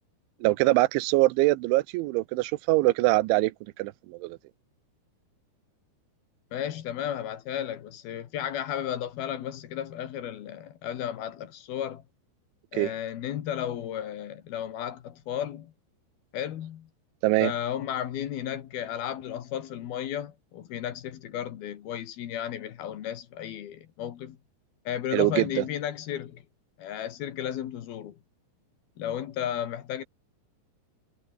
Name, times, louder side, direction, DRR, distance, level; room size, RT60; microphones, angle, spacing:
voice 1, 0.4-3.5 3.8-4.4 12.7-12.9 17.2-17.5 25.1-25.4, right 20 dB, 90° right, 3.2 m, -23 dB
voice 2, 6.5-12.0 12.7-15.7 16.3-16.9 17.4-24.4 24.8-26.4 26.8-28.2 29.0-30.0, left 10 dB, 65° left, 3.3 m, -34 dB
omnidirectional pair, 5.3 m